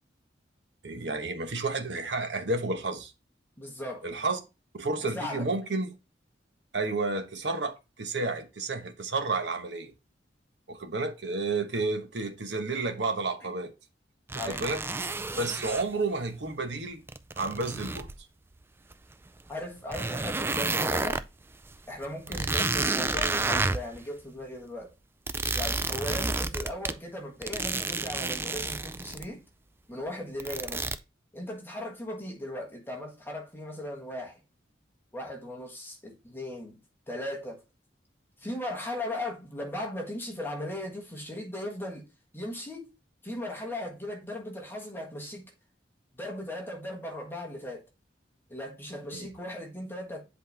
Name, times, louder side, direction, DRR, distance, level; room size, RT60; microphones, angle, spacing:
voice 1, 0.8-3.1 4.0-4.4 4.7-5.9 6.7-9.9 10.7-13.7 14.4-14.8 15.4-17.0 17.4-18.1 22.3-22.4 49.1-49.3, right 3 dB, 75° right, 1.1 m, -31 dB
voice 2, 3.6-4.1 5.0-5.4 14.4-14.6 19.5-21.2 21.9-24.9 25.5-29.4 29.9-30.9 31.3-34.4 35.1-36.8 37.1-37.6 38.4-42.1 42.3-42.9 43.2-45.5 46.2-47.9 48.5-50.2, left 1 dB, 15° left, 1.5 m, -37 dB
sound 1, 14.3-15.8 17.1-18.2 18.9-19.0 19.5-19.6 19.9-21.3 21.7-21.8 22.0-24.0 25.3-26.9 27.4-29.3 30.4-31.0, right 3 dB, 15° right, 0.3 m, -30 dB
7.8 x 4.1 x 3.4 m
head